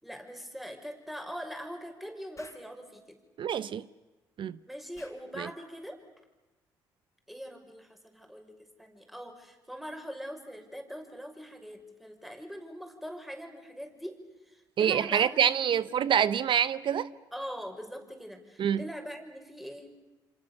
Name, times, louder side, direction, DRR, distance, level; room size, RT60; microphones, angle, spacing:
voice 1, 0.0-3.2 4.7-6.0 7.3-15.9 17.3-19.9, equal, ahead, 6.2 m, -42 dB
Explosion, 2.4-2.7 4.9-5.2, left 3 dB, 30° left, 4.7 m, -53 dB
voice 2, 3.4-3.8 4.4-4.6 5.4-5.5 14.8-17.1 18.6-18.8, right 9 dB, 55° right, 0.9 m, -26 dB
28.0 x 26.5 x 7.1 m
hypercardioid pair, 60°, 10 cm